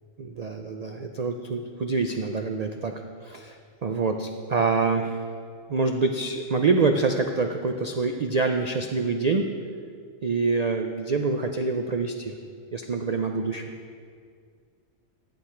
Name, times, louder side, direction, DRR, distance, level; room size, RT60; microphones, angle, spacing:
voice 1, 0.2-3.6 3.8-5.2 5.7-9.6 10.2-12.4 12.7-13.6, right 4 dB, 80° right, 5 dB, 0.3 m, -26 dB
14.0 x 8.2 x 4.4 m, 2.2 s
omnidirectional pair, 1.4 m